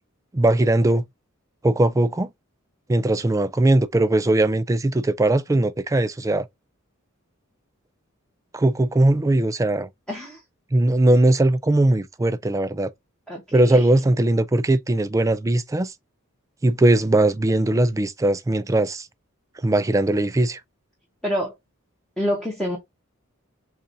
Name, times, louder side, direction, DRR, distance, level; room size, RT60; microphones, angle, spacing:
voice 1, 0.3-1.0 1.6-2.3 2.9-6.5 8.5-9.9 10.7-12.9 13.5-15.9 16.6-19.1 19.6-20.6, right 1 dB, 15° right, 0.3 m, -19 dB
voice 2, 10.1-10.4 13.3-13.9 21.2-21.6 22.2-22.8, equal, 5° left, 1.0 m, -27 dB
6.7 x 2.4 x 2.7 m
head